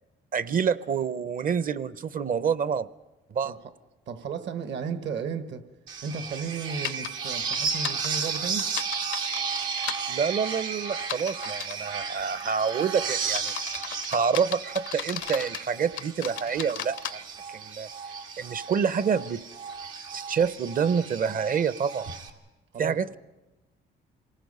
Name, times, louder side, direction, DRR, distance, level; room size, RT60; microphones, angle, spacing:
voice 1, 0.3-2.9 3.3-3.5 10.1-17.2 17.5-17.9 18.4-19.5 20.1-22.0 22.8-23.2, right 6 dB, 45° right, 0.7 m, -27 dB
voice 2, 4.1-5.7 6.0-8.7 22.7-23.0, right 6 dB, 65° right, 1.2 m, -34 dB
sound 1, 5.9-22.3, right 6 dB, 90° right, 1.9 m, -34 dB
sound 2, 6.8-7.1 7.5-10.0 11.0-11.8 12.4-12.7 13.2-15.7 16.0-17.1, left 12 dB, 75° left, 0.6 m, -35 dB
27.0 x 19.5 x 5.5 m
cardioid pair, 90°, 20 cm